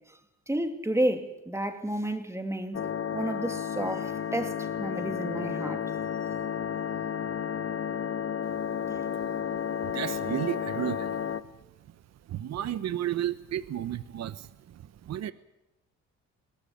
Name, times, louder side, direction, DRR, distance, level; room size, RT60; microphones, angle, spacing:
voice 1, 0.5-5.8, right 1 dB, 10° right, 6 dB, 2.7 m, -31 dB
sound 1, 2.7-11.4, left 8 dB, 50° left, 1.2 m, -32 dB
voice 2, 9.8-11.2 12.3-15.3, right 11 dB, 60° right, 14 dB, 0.9 m, -33 dB
21.5 x 18.0 x 8.7 m, 0.91 s
cardioid pair, 90°, 30 cm